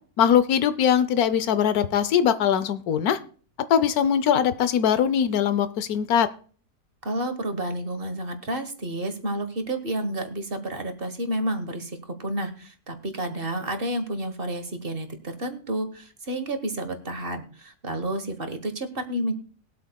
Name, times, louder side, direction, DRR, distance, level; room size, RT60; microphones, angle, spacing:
voice 1, 0.2-3.2 3.7-6.3, left 8 dB, 75° left, 13 dB, 1.2 m, -21 dB
voice 2, 7.0-19.3, right 1 dB, 40° right, 8 dB, 1.4 m, -30 dB
21.0 x 8.3 x 2.3 m, 0.43 s
omnidirectional pair, 1.6 m